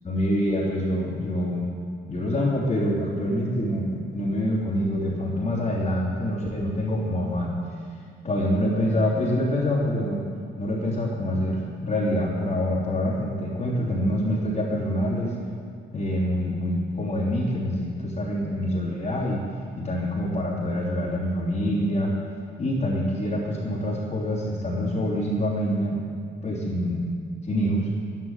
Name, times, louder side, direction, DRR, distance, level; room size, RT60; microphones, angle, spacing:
voice 1, 0.0-1.6 2.1-7.6 8.2-10.2 10.6-15.3 15.9-19.4 19.8-22.1 22.6-26.0 26.4-27.0 27.5-27.9, equal, 35° left, -8 dB, 3.2 m, -26 dB
11.0 x 10.5 x 7.3 m, 2.3 s
cardioid pair, 90°, 20 cm